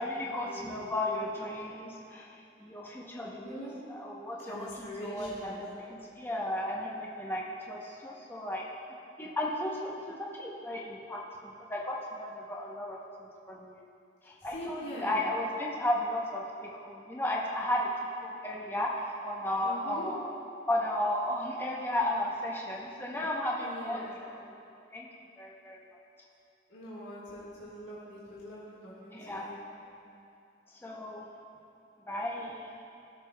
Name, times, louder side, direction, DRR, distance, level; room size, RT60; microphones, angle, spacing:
voice 1, 0.0-2.3 2.6-8.6 9.2-13.8 14.3-16.4 16.7-20.3 20.7-24.0 24.3-24.5 24.9-25.1 25.4-25.8 29.1-29.5 30.8-31.2 32.1-32.7, left 1 dB, 10° left, -3 dB, 0.8 m, -34 dB
voice 2, 3.2-3.8 4.4-5.6 14.4-15.2 19.6-20.1 23.6-24.1 26.7-29.5, equal, 90° left, -9 dB, 1.7 m, -43 dB
16.5 x 6.7 x 2.3 m, 2.6 s
head